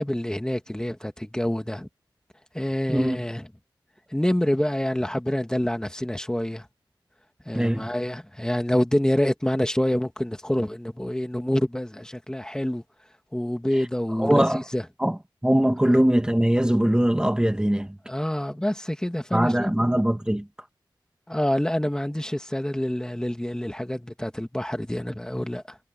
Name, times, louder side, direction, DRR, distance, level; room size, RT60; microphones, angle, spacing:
voice 1, 0.0-1.9 2.5-3.5 4.1-6.7 7.5-12.8 13.3-14.8 18.1-20.0 21.3-25.8, left 1 dB, 10° left, 2.1 m, -27 dB
voice 2, 2.9-3.2 7.5-7.9 14.2-14.6 15.0-15.2 15.4-17.9 19.3-20.5, right 1 dB, 10° right, 1.8 m, -21 dB
wide cardioid pair, 85°, 8 cm